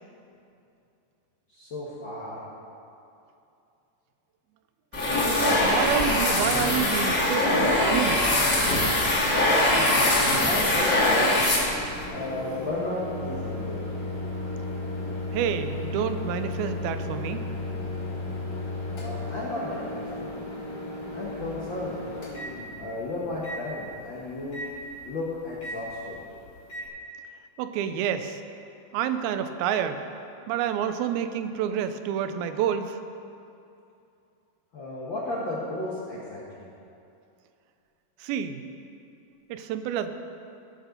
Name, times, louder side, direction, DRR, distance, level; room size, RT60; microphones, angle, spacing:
voice 1, 1.5-2.4 9.7-11.5 12.1-13.9 18.9-20.3 21.1-22.1 22.8-24.6 25.0-26.2 34.7-36.7, left 2 dB, 70° left, -6 dB, 1.1 m, -34 dB
sound 1, 4.9-12.1, left 1 dB, 25° left, 2.3 m, -22 dB
voice 2, 5.4-8.4 15.3-17.5 27.6-28.4 28.9-30.0 30.5-33.0 38.2-38.6 39.5-40.1, right 9 dB, 90° right, 9 dB, 2.5 m, -28 dB
Microwave oven, 10.4-26.9, left 2 dB, 50° left, 3.7 m, -35 dB
15.5 x 6.4 x 5.2 m, 2.6 s
omnidirectional pair, 4.2 m